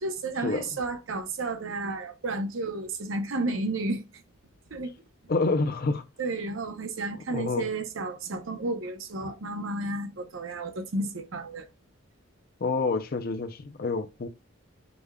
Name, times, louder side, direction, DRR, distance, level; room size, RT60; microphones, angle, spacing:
voice 1, 0.0-4.0 4.7-4.9 6.2-11.7, right 2 dB, 75° right, 0.8 m, -32 dB
voice 2, 5.3-6.0 7.3-7.7 12.6-14.3, left 3 dB, 50° left, 0.5 m, -28 dB
5.1 x 3.5 x 2.3 m
head